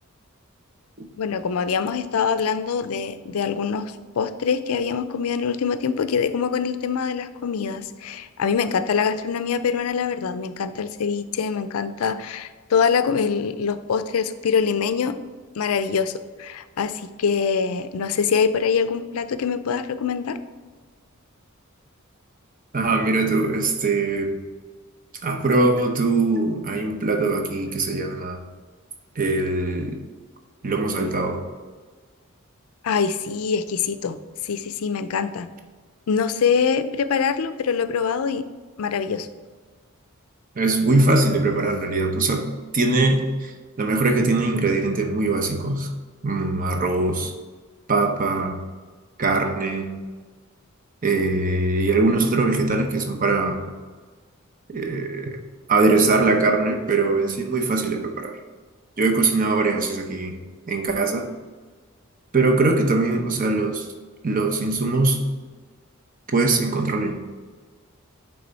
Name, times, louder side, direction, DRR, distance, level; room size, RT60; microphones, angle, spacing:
voice 1, 1.2-15.2 15.6-20.4 32.8-34.2 34.4-35.5 36.1-38.4 38.8-39.3, left 6 dB, 80° left, 12 dB, 0.4 m, -24 dB
voice 2, 22.7-24.3 25.2-28.4 29.2-30.0 30.6-31.4 40.6-42.5 42.7-43.5 43.8-45.9 46.2-47.3 47.9-48.6 49.2-49.9 51.0-53.6 54.7-55.4 55.7-58.4 59.0-60.4 60.7-61.3 62.3-63.9 64.2-65.2 66.3-67.1, right 3 dB, 40° right, 4 dB, 0.8 m, -21 dB
8.6 x 3.4 x 4.0 m, 1.5 s
head